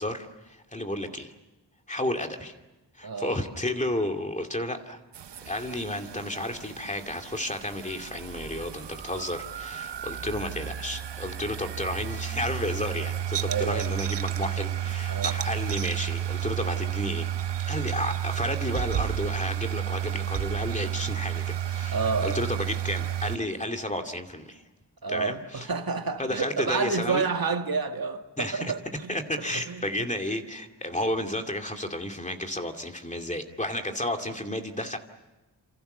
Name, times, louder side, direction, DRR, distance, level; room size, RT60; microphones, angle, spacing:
voice 1, 0.0-1.3 1.9-2.6 2.9-5.0 5.4-17.3 17.7-24.6 25.1-25.7 26.2-27.3 28.4-28.7 29.1-35.0, left 1 dB, 15° left, 2.5 m, -32 dB
voice 2, 3.0-3.4 13.5-13.9 15.1-15.4 21.9-22.4 25.0-30.1, right 5 dB, 55° right, 1.9 m, -30 dB
sound 1, 5.1-23.4, right 11 dB, 75° right, 0.9 m, -32 dB
28.5 x 28.0 x 6.8 m
wide cardioid pair, 115°, 42 cm